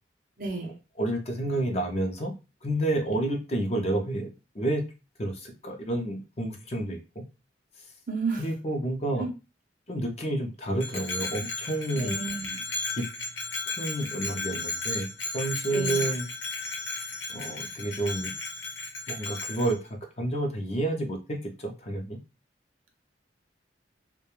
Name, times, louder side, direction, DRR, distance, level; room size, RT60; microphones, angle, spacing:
voice 1, 0.4-0.7 8.1-8.5 9.2-9.3 12.0-12.6 15.7-16.0, right 4 dB, 45° right, 3 dB, 0.6 m, -32 dB
voice 2, 1.0-2.3 2.6-4.8 5.2-7.2 8.4-9.3 9.9-12.2 13.0-13.1 13.8-15.1 15.3-16.2 17.3-18.3 19.1-22.2, right 1 dB, 35° left, 3 dB, 0.5 m, -30 dB
Bell, 10.8-19.7, left 3 dB, 85° left, 0.9 m, -34 dB
2.3 x 2.2 x 3.0 m, 0.28 s
head